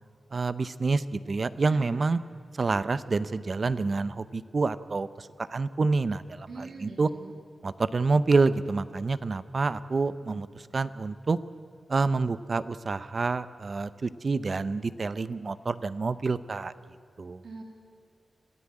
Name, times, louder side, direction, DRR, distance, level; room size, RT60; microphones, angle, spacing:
voice 1, 0.3-2.2 2.5-7.1 7.6-11.4 11.9-16.7 17.2-17.4, right 3 dB, 40° right, 15 dB, 0.7 m, -28 dB
voice 2, 6.5-7.3 17.4-17.6, right 3 dB, 65° right, 1 dB, 2.9 m, -43 dB
26.5 x 15.5 x 8.7 m, 2.4 s
wide cardioid pair, 140°, 0 cm